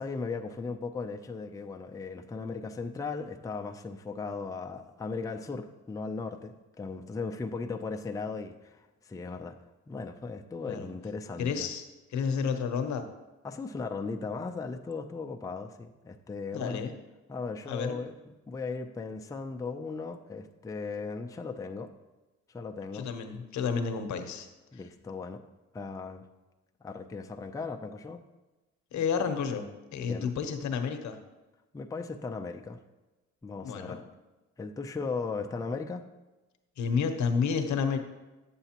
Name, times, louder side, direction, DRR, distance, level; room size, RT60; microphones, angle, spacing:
voice 1, 0.0-9.6 9.9-11.7 13.4-16.8 17.3-18.1 18.5-21.9 22.5-23.1 24.7-25.4 25.7-26.2 26.8-28.2 30.1-30.3 31.7-32.8 33.4-34.0 34.6-36.0, left 4 dB, 10° left, 4 dB, 0.4 m, -37 dB
voice 2, 11.4-11.9 12.1-13.1 16.5-16.9 17.7-18.0 22.9-24.5 28.9-31.2 33.6-34.0 36.8-38.0, left 6 dB, 70° left, 8 dB, 0.8 m, -30 dB
9.0 x 6.9 x 2.9 m, 1.1 s
cardioid pair, 90°, 30 cm